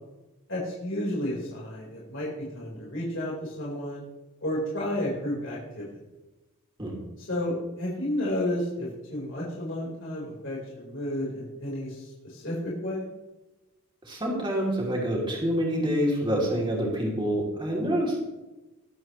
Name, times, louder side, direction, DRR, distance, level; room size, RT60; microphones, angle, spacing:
voice 1, 0.5-4.0 4.4-5.9 7.2-13.1, left 1 dB, 60° left, -5 dB, 4.5 m, -32 dB
voice 2, 14.0-18.2, equal, 20° right, -2 dB, 3.1 m, -27 dB
21.0 x 8.5 x 3.2 m, 1.1 s
head